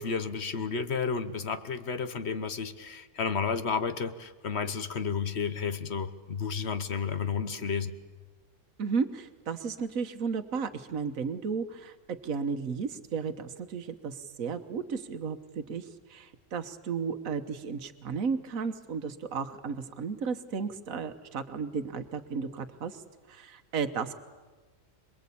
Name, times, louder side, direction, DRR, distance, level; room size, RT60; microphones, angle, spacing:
voice 1, 0.0-7.9, left 5 dB, 55° left, 11 dB, 1.3 m, -32 dB
voice 2, 8.8-23.0 23.3-24.1, right 5 dB, 80° right, 8 dB, 1.6 m, -34 dB
26.5 x 20.5 x 8.5 m, 1.3 s
omnidirectional pair, 1.4 m